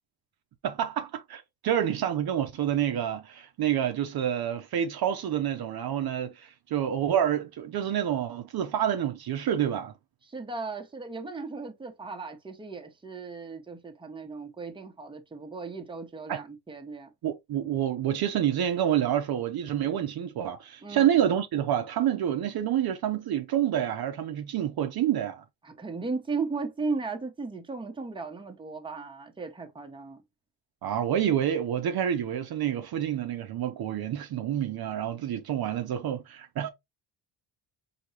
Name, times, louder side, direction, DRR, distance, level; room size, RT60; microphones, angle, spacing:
voice 1, 0.6-9.9 16.3-16.4 17.2-25.4 30.8-36.7, right 10 dB, 55° right, 0.6 m, -28 dB
voice 2, 10.3-17.1 20.8-21.1 25.6-30.2, right 4 dB, 10° right, 0.8 m, -36 dB
4.5 x 2.8 x 2.8 m
cardioid pair, 100°, 46 cm